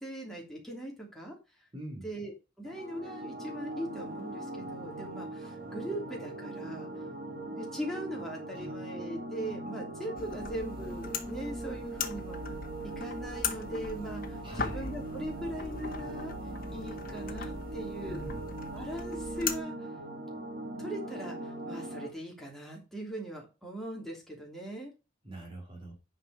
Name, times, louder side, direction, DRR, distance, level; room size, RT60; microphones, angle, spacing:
voice 1, 0.0-1.4 2.0-6.9 7.6-12.4 13.0-16.3 16.7-18.2 18.7-19.7 20.8-24.9, right 1 dB, ahead, -1 dB, 3.1 m, -40 dB
voice 2, 1.7-2.1 8.5-8.8 14.4-14.9 18.1-18.5 25.2-25.9, right 1 dB, 25° right, 1 dB, 2.5 m, -44 dB
sound 1, 2.6-22.1, right 2 dB, 45° right, 2.9 m, -40 dB
sound 2, 10.2-19.6, left 5 dB, 45° left, 1.5 m, -39 dB
9.8 x 5.6 x 4.8 m, 0.29 s
head